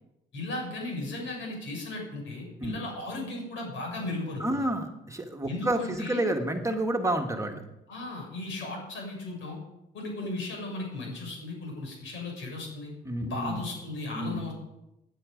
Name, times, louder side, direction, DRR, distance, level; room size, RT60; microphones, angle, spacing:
voice 1, 0.3-4.7 5.4-6.2 7.9-9.6 9.9-12.9 13.2-14.5, left 2 dB, 75° left, 0 dB, 6.6 m, -36 dB
voice 2, 4.4-7.6 13.0-13.6 14.1-14.5, right 1 dB, 15° right, 4 dB, 1.6 m, -29 dB
16.5 x 9.4 x 5.2 m, 0.90 s
cardioid pair, 90°, 20 cm